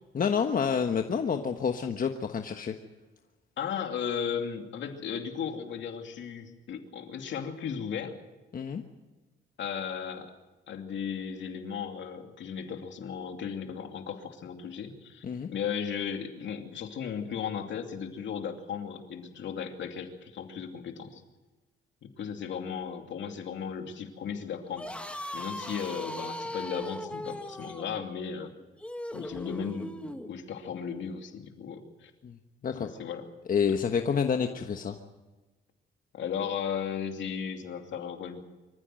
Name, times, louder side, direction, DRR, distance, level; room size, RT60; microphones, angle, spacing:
voice 1, 0.1-2.7 8.5-8.8 15.2-15.5 32.2-32.3 32.6-32.9 33.5-35.0, left 6 dB, 45° left, 5 dB, 1.3 m, -28 dB
voice 2, 3.6-8.1 9.6-10.3 10.7-15.2 15.5-21.2 22.0-24.9 25.3-28.5 29.1-32.1 32.7-33.2 36.1-38.4, left 7 dB, 70° left, 5 dB, 2.7 m, -36 dB
sound 1, 24.7-30.3, left 1 dB, 5° left, 1.6 m, -39 dB
25.0 x 14.5 x 7.7 m, 1.2 s
cardioid pair, 90°, 20 cm